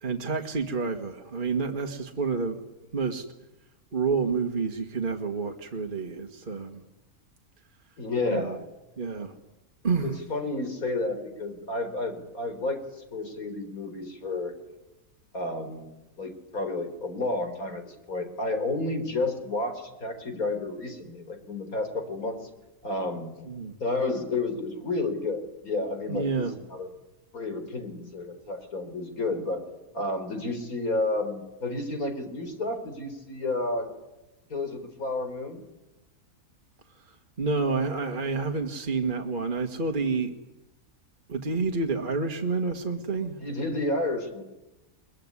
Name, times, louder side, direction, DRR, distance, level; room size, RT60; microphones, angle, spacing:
voice 1, 0.0-2.6 2.9-3.2 3.9-6.8 8.3-8.6 9.0-9.3 9.8-10.2 23.4-23.8 26.1-26.5 37.1-40.3 41.3-43.4, right 4 dB, 35° right, 4 dB, 1.9 m, -29 dB
voice 2, 8.0-8.6 10.0-14.5 15.3-15.9 16.2-22.4 22.8-23.3 23.8-26.9 27.3-29.6 29.9-33.9 34.5-35.7 43.4-44.4, left 2 dB, 80° left, 8 dB, 4.5 m, -31 dB
22.5 x 22.5 x 9.8 m, 0.99 s
omnidirectional pair, 1.5 m